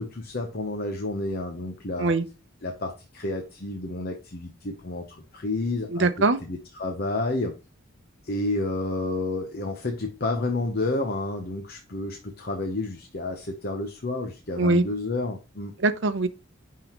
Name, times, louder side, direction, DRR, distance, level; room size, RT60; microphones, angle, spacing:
voice 1, 0.0-2.1 2.6-6.1 6.4-7.5 8.2-15.7, left 2 dB, 45° left, 0.8 m, -30 dB
voice 2, 5.9-6.4 14.6-14.8 15.8-16.3, right 3 dB, 60° right, 0.6 m, -22 dB
10.5 x 3.7 x 3.0 m
head